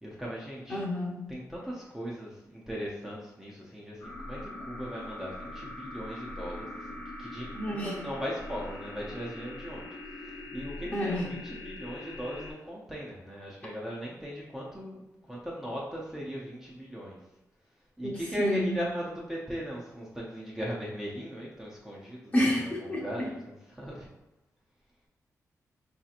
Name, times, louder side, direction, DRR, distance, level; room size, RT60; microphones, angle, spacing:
voice 1, 0.0-0.8 1.3-17.2 18.0-24.1, equal, 5° right, -5 dB, 0.6 m, -38 dB
voice 2, 0.7-1.2 7.5-7.9 10.9-11.3 18.0-18.7 22.3-23.3, left 1 dB, 25° left, -3 dB, 0.9 m, -29 dB
sound 1, 4.0-12.5, left 1 dB, 80° left, 0.8 m, -42 dB
4.8 x 2.8 x 2.5 m, 0.93 s
wide cardioid pair, 130°, 6 cm